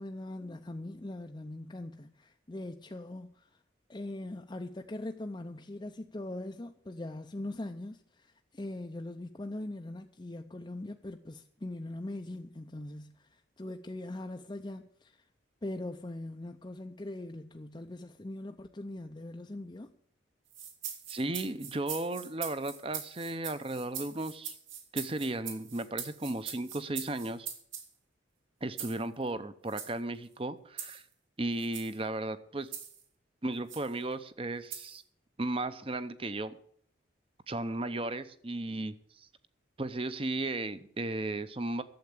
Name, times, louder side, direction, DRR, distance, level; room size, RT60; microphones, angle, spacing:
voice 1, 0.0-3.6 3.9-15.3 15.6-19.9, left 1 dB, 20° left, 0.5 m, -41 dB
sound 1, 20.5-27.9 28.8-29.0 29.7-29.9 30.8-31.0 31.6-32.0 32.7-33.0 33.7-33.9 34.7-35.0, right 8 dB, 80° right, 2.4 m, -42 dB
voice 2, 21.1-24.5 24.9-27.5 28.6-31.0 31.4-32.7 33.4-35.0 35.4-36.6 37.5-39.3 39.8-41.8, right 2 dB, 30° right, 0.7 m, -35 dB
11.5 x 7.8 x 8.6 m
head